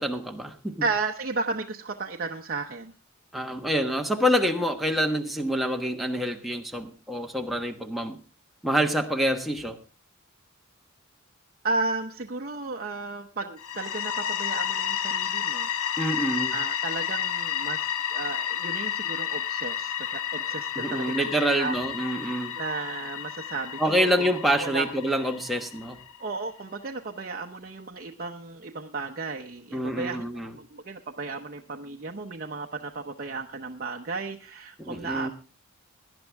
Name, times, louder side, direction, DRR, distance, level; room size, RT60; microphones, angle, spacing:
voice 1, 0.0-0.8 3.3-8.2 8.6-9.8 16.0-16.6 20.8-22.5 23.8-26.0 29.7-30.6 34.8-35.3, equal, ahead, 2 dB, 1.3 m, -26 dB
voice 2, 0.8-2.9 11.6-15.7 16.5-21.2 21.5-21.9 22.5-24.1 24.5-24.9 26.2-30.2 30.5-35.3, right 3 dB, 45° right, 2 dB, 0.8 m, -34 dB
sound 1, 13.6-26.3, left 9 dB, 90° left, 0.8 m, -31 dB
18.0 x 11.0 x 3.4 m, 0.35 s
head